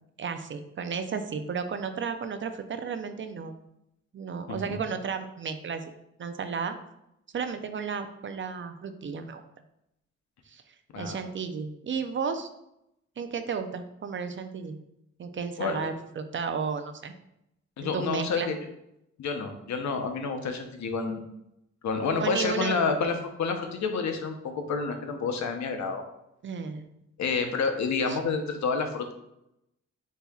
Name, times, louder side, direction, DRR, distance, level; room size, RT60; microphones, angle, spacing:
voice 1, 0.2-3.5 4.1-5.8 6.2-6.8 7.3-9.4 10.5-10.6 11.0-12.5 13.2-14.8 15.2-17.1 17.8-18.5 22.2-22.8 26.4-26.9 28.1-28.2, right 5 dB, 45° right, 8 dB, 0.5 m, -33 dB
voice 2, 10.9-11.3 15.6-15.9 17.8-18.6 19.2-21.3 21.8-26.0 27.2-29.1, left 4 dB, 70° left, 5 dB, 0.8 m, -29 dB
8.0 x 2.8 x 2.3 m, 0.82 s
cardioid pair, 75°, 29 cm